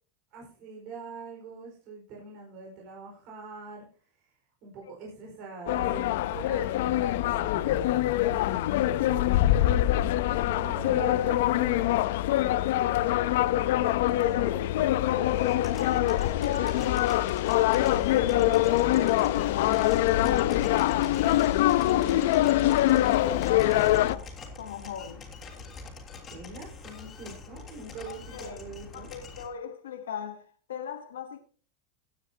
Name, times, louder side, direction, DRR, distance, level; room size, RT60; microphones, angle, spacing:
voice 1, 0.3-3.8 4.2-4.3 4.6-13.3 14.1-15.4 21.7-22.2 26.3-29.1, right 3 dB, 55° right, 4.6 m, -44 dB
sound 1, 5.7-24.2, left 14 dB, 70° left, 0.6 m, -24 dB
voice 2, 15.1-17.3 17.5-21.9 22.7-24.3 24.6-25.2 28.1-28.6 28.9-31.4, left 9 dB, 90° left, 1.1 m, -37 dB
sound 2, 15.3-29.5, left 4 dB, 30° left, 3.4 m, -45 dB
17.0 x 9.5 x 2.8 m
supercardioid pair, 120°, 0 cm